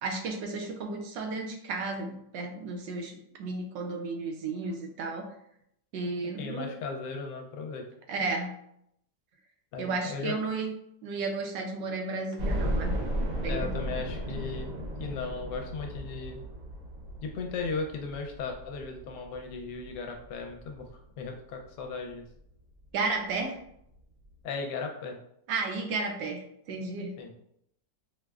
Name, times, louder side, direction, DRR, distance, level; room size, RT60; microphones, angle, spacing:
voice 1, 0.0-5.3 5.9-6.7 8.1-8.5 9.8-10.7 11.0-12.9 13.2-13.7 22.9-23.6 25.5-27.1, right 3 dB, 85° right, 3 dB, 1.3 m, -33 dB
voice 2, 6.4-7.9 9.7-10.4 13.4-14.7 15.0-16.4 17.2-20.9 21.2-22.2 24.4-25.2 27.2-27.3, left 4 dB, 75° left, 3 dB, 1.1 m, -36 dB
sound 1, 12.4-21.3 21.8-21.9 22.2-22.3 23.5-23.6 23.9-24.0, equal, 60° right, 1.0 m, -35 dB
4.7 x 2.0 x 2.3 m, 0.73 s
omnidirectional pair, 2.0 m